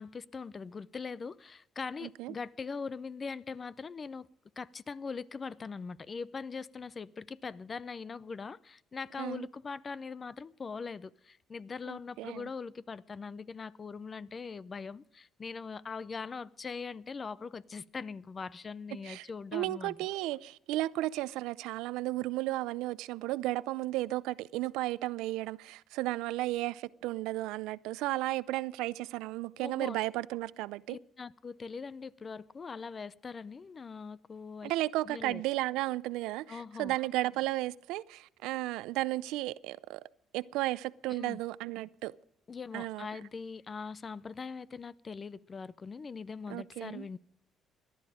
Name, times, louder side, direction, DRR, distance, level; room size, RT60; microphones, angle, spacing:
voice 1, 0.0-4.3 4.6-20.0 29.6-30.0 30.9-34.7 35.0-35.4 36.5-36.9 41.1-41.4 42.5-47.2, left 5 dB, 35° left, 0.6 m, -41 dB
voice 2, 2.0-2.3 9.2-9.5 11.9-12.5 19.0-19.3 19.5-31.0 34.6-40.0 40.3-42.1 42.7-43.1 46.5-47.1, right 17 dB, 90° right, 0.5 m, -34 dB
18.5 x 11.5 x 5.0 m
cardioid pair, 95°, 0 cm